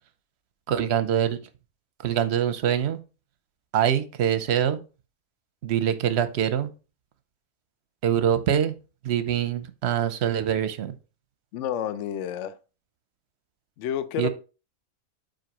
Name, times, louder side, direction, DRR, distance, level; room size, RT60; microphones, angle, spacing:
voice 1, 0.7-1.4 2.0-3.0 3.7-4.8 5.6-6.7 8.0-8.8 9.0-10.9 14.2-14.3, right 9 dB, 60° right, 0.8 m, -24 dB
voice 2, 11.5-12.6 13.8-14.3, left 9 dB, 65° left, 0.9 m, -29 dB
7.8 x 4.7 x 2.9 m
omnidirectional pair, 1.5 m